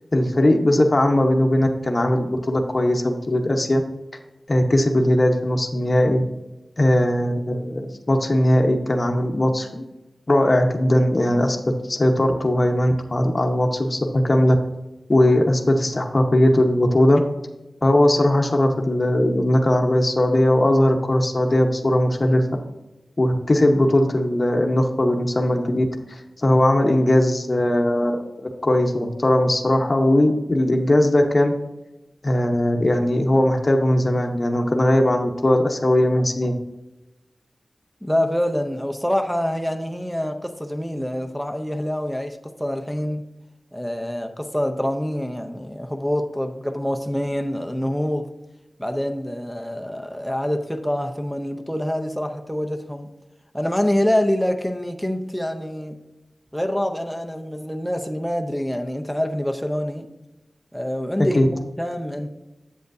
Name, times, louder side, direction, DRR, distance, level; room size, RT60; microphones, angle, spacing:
voice 1, 0.1-3.8 4.5-6.2 6.8-9.9 10.3-14.6 15.1-17.2 17.8-22.4 23.2-31.5 32.2-36.6 61.3-61.5, left 1 dB, 35° left, 3 dB, 0.9 m, -19 dB
voice 2, 38.0-43.2 43.7-48.3 48.8-53.1 53.5-56.0 56.5-60.1 60.7-62.3, equal, ahead, 4 dB, 0.7 m, -26 dB
8.0 x 7.8 x 2.6 m, 1.0 s
wide cardioid pair, 95°, 0 cm